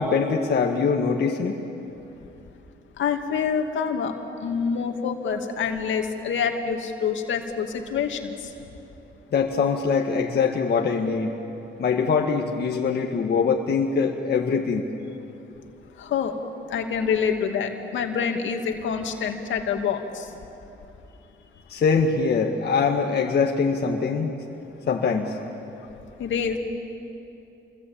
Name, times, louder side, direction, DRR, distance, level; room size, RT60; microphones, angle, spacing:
voice 1, 0.0-1.5 9.3-11.3 11.8-14.8 21.7-24.3 24.9-25.4, left 5 dB, 55° left, 0 dB, 1.9 m, -23 dB
voice 2, 3.0-8.5 16.0-16.4 16.7-20.4 26.2-26.6, left 6 dB, 70° left, 4 dB, 2.5 m, -26 dB
28.0 x 22.5 x 8.8 m, 2.9 s
cardioid pair, 90°, 20 cm